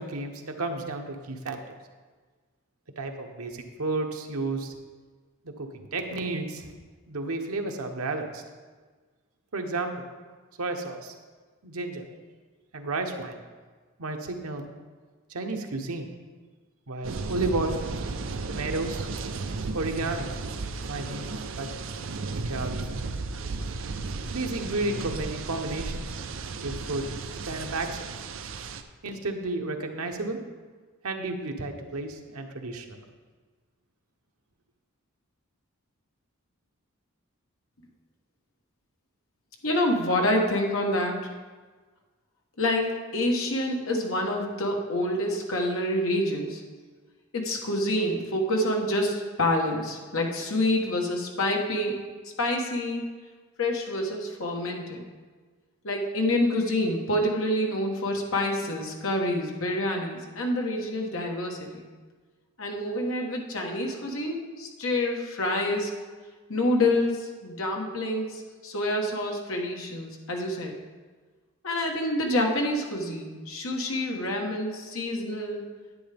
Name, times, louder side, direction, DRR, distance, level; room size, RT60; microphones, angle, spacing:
voice 1, 0.0-1.8 3.0-4.7 5.6-6.7 7.1-8.4 9.5-9.9 10.6-11.1 11.6-12.0 12.7-13.4 14.0-14.7 15.3-16.1 16.9-17.8 18.5-19.1 19.7-20.3 20.9-21.3 21.6-21.7 22.5-22.9 24.3-26.0 26.6-27.1 27.4-28.0 29.0-30.4 31.0-33.0, right 2 dB, 85° right, 4 dB, 1.0 m, -32 dB
sound 1, 17.0-28.8, right 3 dB, 65° right, 0.5 m, -34 dB
voice 2, 39.6-41.2 42.6-46.6 47.3-52.0 52.4-53.0 53.6-55.0 55.8-61.9 62.6-65.9 66.5-70.8 71.6-75.6, left 1 dB, 70° left, 1 dB, 1.3 m, -27 dB
10.0 x 8.7 x 3.5 m, 1.4 s
head